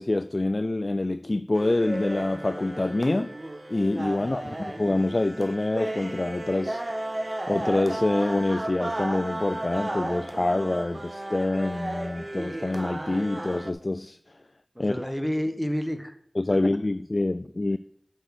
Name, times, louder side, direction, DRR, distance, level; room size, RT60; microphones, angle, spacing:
voice 1, 0.0-3.4 3.7-7.1 7.5-14.2 14.8-15.1 16.4-17.8, left 2 dB, 50° left, 0.3 m, -26 dB
sound 1, 1.5-13.7, right 1 dB, 45° right, 0.9 m, -34 dB
voice 2, 14.7-16.2 16.5-16.7, equal, ahead, 1.3 m, -30 dB
7.9 x 6.0 x 6.2 m
wide cardioid pair, 40°, 0 cm